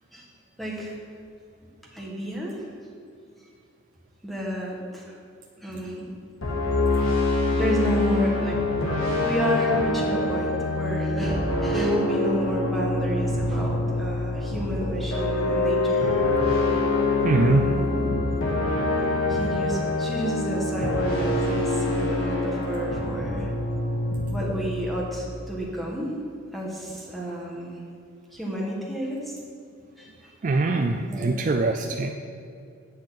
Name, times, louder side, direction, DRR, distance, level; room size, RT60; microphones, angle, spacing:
voice 1, 0.6-1.0 1.9-2.7 4.2-5.2 5.6-6.1 7.5-16.2 17.4-18.2 19.3-23.5 24.3-26.2 26.5-27.8 28.3-29.3 30.0-30.3 31.1-31.9, equal, ahead, -3 dB, 1.4 m, -31 dB
sound 1, 6.4-25.6, left 2 dB, 85° left, 1.8 m, -25 dB
voice 2, 17.2-17.7 30.4-32.1, right 3 dB, 40° right, 5 dB, 0.3 m, -23 dB
8.5 x 8.0 x 4.1 m, 2.5 s
head